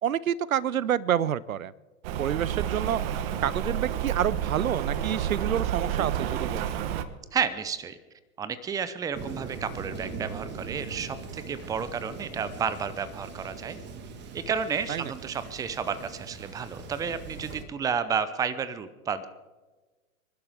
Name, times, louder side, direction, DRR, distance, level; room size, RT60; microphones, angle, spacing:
voice 1, 0.0-1.7 2.2-3.0 3.4-6.8 14.9-15.1, right 10 dB, 75° right, 22 dB, 0.7 m, -28 dB
Rain, 2.0-7.0, right 10 dB, 45° right, 1.2 m, -30 dB
voice 2, 7.3-8.0 8.4-13.8 14.3-19.3, right 6 dB, 10° right, 15 dB, 0.6 m, -31 dB
Thunder, 9.1-17.6, right 5 dB, 25° right, 1.6 m, -41 dB
27.0 x 11.5 x 3.5 m, 1.3 s
hypercardioid pair, 110°, 42 cm